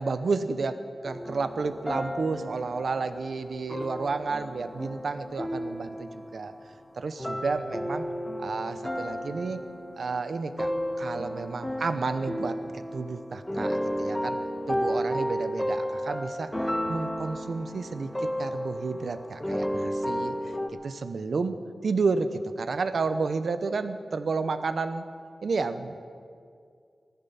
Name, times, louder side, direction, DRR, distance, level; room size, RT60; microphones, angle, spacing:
voice 1, 0.0-6.5 7.0-8.1 8.4-9.6 10.0-10.7 11.0-14.4 14.7-16.5 16.9-20.5 20.8-25.1 25.4-26.0, right 4 dB, 70° right, 10 dB, 0.9 m, -31 dB
sound 1, 1.0-6.8 7.2-20.7, equal, 10° left, 1.3 m, -33 dB
17.0 x 14.5 x 5.8 m, 2.3 s
wide cardioid pair, 105°, 0 cm